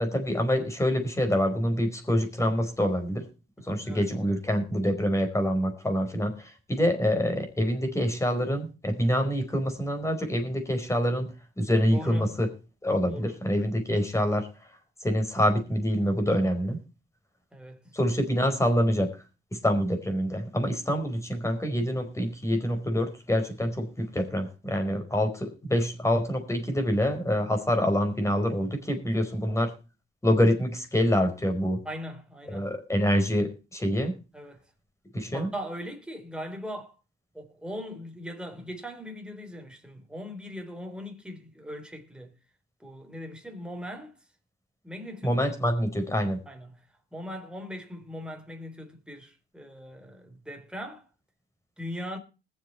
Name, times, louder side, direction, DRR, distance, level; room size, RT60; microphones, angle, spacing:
voice 1, 0.0-3.2 3.6-12.5 12.8-14.5 15.0-16.8 17.9-19.1 19.5-29.7 30.2-31.8 32.5-34.1 35.1-35.5 45.2-46.4, equal, 15° left, 4.7 m, -26 dB
voice 2, 11.9-12.4 13.1-13.3 17.5-17.8 31.9-32.7 34.3-34.6 35.3-36.9 37.3-42.3 42.8-44.1 44.8-45.3 46.5-46.7 47.1-51.0 51.8-52.2, equal, 5° right, 3.7 m, -39 dB
20.5 x 7.6 x 4.2 m
cardioid pair, 90°, 20 cm